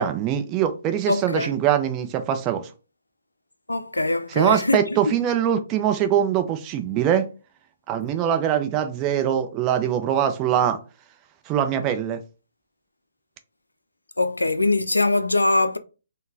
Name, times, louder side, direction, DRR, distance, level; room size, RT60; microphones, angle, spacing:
voice 1, 0.0-2.7 4.4-7.3 7.9-10.8 11.5-12.2, right 9 dB, 25° right, 0.5 m, -22 dB
voice 2, 1.1-1.5 3.7-5.2 14.2-15.8, left 2 dB, 85° left, 0.3 m, -22 dB
3.9 x 2.1 x 2.6 m
figure-of-eight pair, 135°, 0 cm